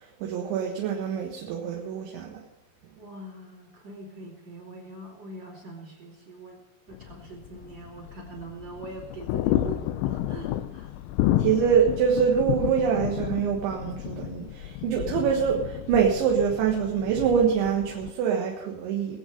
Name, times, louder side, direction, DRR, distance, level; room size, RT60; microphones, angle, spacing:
voice 1, 0.2-2.4 11.4-19.2, right 7 dB, 75° right, 0 dB, 3.8 m, -25 dB
voice 2, 3.0-6.6 6.9-10.9, right 2 dB, 40° right, 0 dB, 3.1 m, -43 dB
sound 1, 6.9-18.1, left 13 dB, 90° left, 3.3 m, -31 dB
23.0 x 8.1 x 5.2 m, 0.88 s
omnidirectional pair, 5.6 m